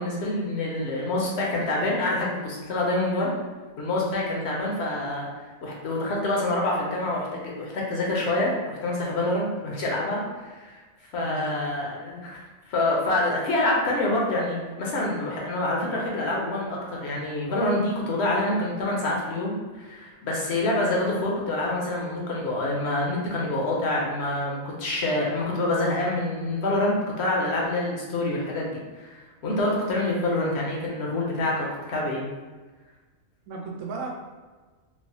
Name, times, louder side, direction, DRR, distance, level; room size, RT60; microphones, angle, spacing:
voice 1, 0.0-3.3 3.8-10.8 11.1-12.4 12.7-32.3, left 2 dB, 65° left, -2 dB, 0.8 m, -26 dB
voice 2, 11.2-11.7 33.5-34.1, right 3 dB, 85° right, -1 dB, 1.0 m, -35 dB
3.2 x 2.0 x 2.6 m, 1.3 s
omnidirectional pair, 1.4 m